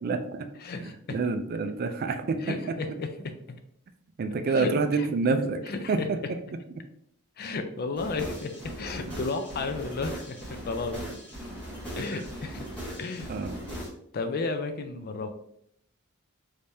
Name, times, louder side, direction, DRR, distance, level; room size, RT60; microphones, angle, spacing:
voice 1, 0.0-0.5 0.7-2.4 4.2-5.6 5.9-6.2 13.3-13.6, right 4 dB, 45° right, 7 dB, 0.3 m, -27 dB
voice 2, 0.6-1.2 2.4-3.6 4.5-5.1 5.7-6.3 7.4-11.0 12.0-12.7 13.0-13.3 14.1-15.3, left 3 dB, 45° left, 7 dB, 0.4 m, -33 dB
sound 1, 7.9-13.9, equal, 5° left, 1.3 m, -39 dB
3.4 x 3.3 x 2.7 m, 0.70 s
head